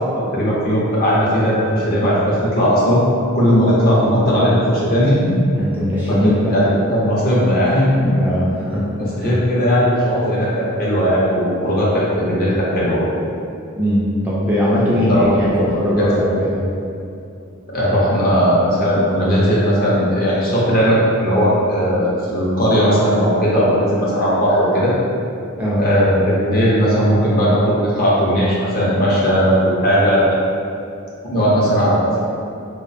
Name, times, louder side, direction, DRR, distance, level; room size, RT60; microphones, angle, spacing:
voice 1, 0.0-3.0 3.3-5.4 6.1-8.2 9.2-13.1 15.1-16.1 17.7-24.9 25.8-30.4 31.3-32.2, equal, 45° left, -6 dB, 0.6 m, -17 dB
voice 2, 5.6-6.5 8.2-8.9 9.2-9.3 13.8-16.6 25.6-25.9, equal, 10° right, -8 dB, 0.3 m, -19 dB
2.4 x 2.1 x 2.6 m, 2.5 s
head